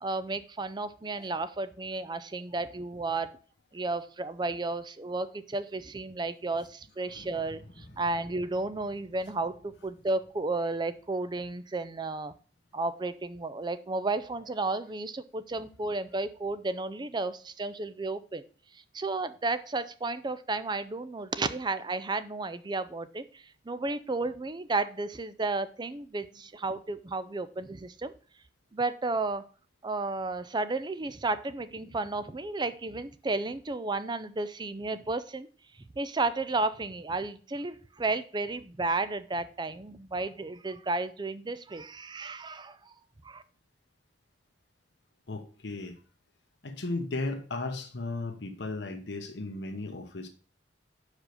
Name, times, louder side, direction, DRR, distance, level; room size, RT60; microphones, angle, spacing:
voice 1, 0.0-3.4 3.7-12.3 12.7-18.4 18.7-28.1 28.7-29.4 29.8-35.5 36.0-42.9 43.2-43.4, right 3 dB, 25° right, 13 dB, 0.5 m, -33 dB
Explosion, 7.1-13.1 13.4-13.5, left 1 dB, 25° left, 1.5 m, -55 dB
voice 2, 45.3-46.0 46.6-50.3, left 2 dB, 70° left, 6 dB, 1.0 m, -35 dB
5.2 x 4.9 x 6.3 m, 0.40 s
head